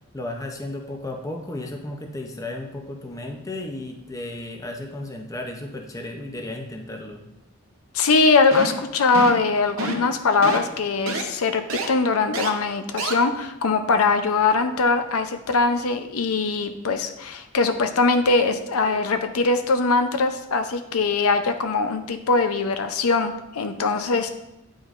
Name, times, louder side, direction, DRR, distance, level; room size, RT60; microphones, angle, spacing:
voice 1, 0.1-7.2, left 1 dB, 15° left, 3 dB, 0.5 m, -34 dB
voice 2, 7.9-24.3, left 4 dB, 85° left, 8 dB, 0.6 m, -21 dB
sound 1, 8.5-8.8 9.1-9.4 9.8-10.1 10.4-10.6 11.1-11.2 11.7-11.9 12.3-12.5 13.0-13.1, right 3 dB, 75° right, 0.8 m, -28 dB
9.1 x 5.0 x 2.5 m, 0.86 s
head